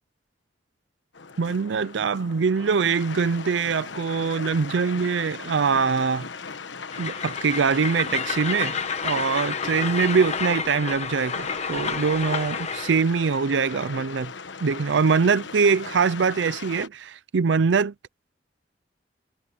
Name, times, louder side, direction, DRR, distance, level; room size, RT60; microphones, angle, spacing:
sound 1, 1.1-16.9, left 5 dB, 80° left, 1.2 m, -39 dB
voice 1, 1.4-6.3 7.0-8.8 9.0-14.3 14.6-17.9, right 5 dB, 80° right, 0.5 m, -23 dB
Train, 6.9-13.0, left 5 dB, 35° left, 1.2 m, -30 dB
head